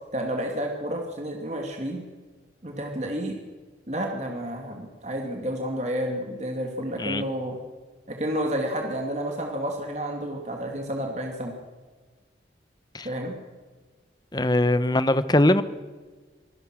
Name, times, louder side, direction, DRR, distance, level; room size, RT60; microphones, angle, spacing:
voice 1, 0.1-2.1 2.6-3.4 3.9-7.6 8.1-11.5 13.0-13.4, equal, 40° right, 2 dB, 2.5 m, -30 dB
voice 2, 14.3-15.6, left 1 dB, 20° left, 14 dB, 0.9 m, -21 dB
26.0 x 18.0 x 6.3 m, 1.4 s
head